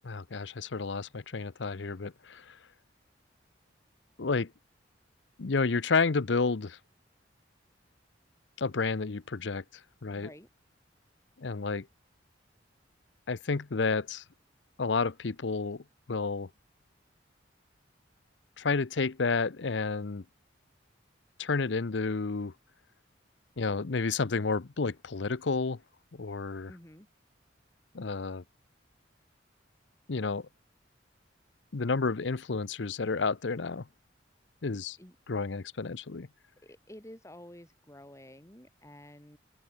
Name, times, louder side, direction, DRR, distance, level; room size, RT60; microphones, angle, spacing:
voice 1, 0.0-2.6 4.2-4.5 5.4-6.8 8.6-9.6 10.0-10.3 11.4-11.9 13.3-14.2 14.8-15.8 16.1-16.5 18.6-20.2 21.4-22.5 23.6-25.8 26.1-26.7 27.9-28.4 30.1-30.5 31.7-33.9 34.6-35.0 35.3-36.3, left 4 dB, 75° left, 0.7 m, -30 dB
voice 2, 10.1-10.5 26.7-27.1 35.0-35.2 36.6-39.4, left 1 dB, 15° left, 5.7 m, -50 dB
head